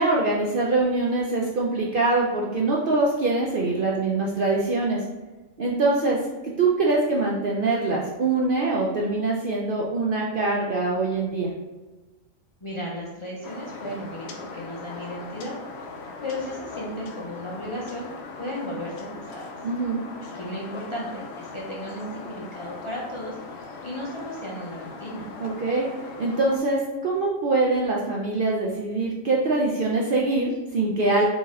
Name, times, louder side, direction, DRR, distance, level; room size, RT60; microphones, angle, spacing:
voice 1, 0.0-5.0 5.6-6.2 6.4-11.5 19.6-20.0 25.4-25.9 26.2-31.2, right 3 dB, 60° right, -3 dB, 0.6 m, -23 dB
voice 2, 12.6-15.6 16.2-18.1 18.4-19.5 20.3-25.3, equal, 35° left, -4 dB, 0.5 m, -35 dB
sound 1, 13.4-26.6, left 3 dB, 65° left, 0.8 m, -40 dB
4.2 x 2.9 x 3.6 m, 1.2 s
omnidirectional pair, 1.4 m